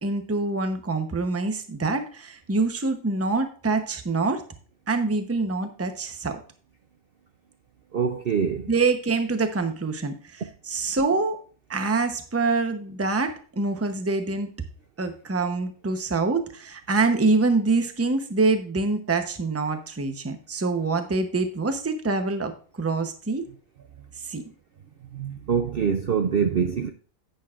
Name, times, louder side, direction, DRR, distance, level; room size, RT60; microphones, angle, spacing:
voice 1, 0.0-4.4 4.9-6.4 8.7-11.4 11.7-14.5 15.0-22.5 22.8-23.5 24.2-24.4, right 3 dB, 15° right, 0.7 m, -25 dB
voice 2, 7.9-8.7 25.1-26.9, right 7 dB, 55° right, 0.7 m, -24 dB
10.5 x 9.1 x 2.5 m
omnidirectional pair, 1.5 m